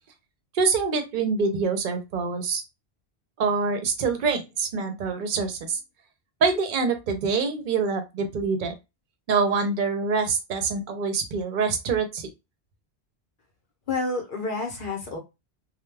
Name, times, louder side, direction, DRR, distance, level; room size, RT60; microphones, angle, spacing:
voice 1, 0.5-2.6 3.4-5.8 6.4-8.7 9.3-12.3, right 4 dB, 55° right, 6 dB, 0.7 m, -25 dB
voice 2, 13.9-15.2, left 3 dB, 60° left, 1 dB, 0.8 m, -29 dB
2.2 x 2.1 x 3.2 m, 0.24 s
omnidirectional pair, 1.1 m